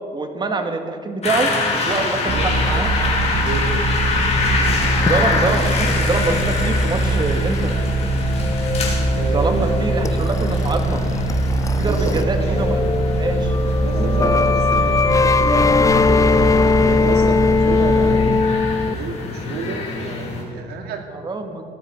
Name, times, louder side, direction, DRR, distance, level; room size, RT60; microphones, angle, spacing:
voice 1, 0.1-2.9 5.0-7.8 9.3-11.0 11.8-12.8 13.2-13.7 21.1-21.6, right 3 dB, 25° right, 5 dB, 2.0 m, -24 dB
sound 1, 1.2-20.4, left 3 dB, 40° left, 4.3 m, -26 dB
sound 2, 2.3-18.3, right 2 dB, 45° right, 2.2 m, -22 dB
voice 2, 3.4-3.7 9.1-9.7 11.9-12.6 13.8-18.4 18.9-21.1, right 4 dB, 75° right, 3 dB, 2.7 m, -30 dB
sound 3, 5.1-12.2 12.5-18.9, left 5 dB, 20° left, 0.4 m, -21 dB
18.0 x 13.0 x 6.0 m, 2.3 s
cardioid pair, 110°, 17 cm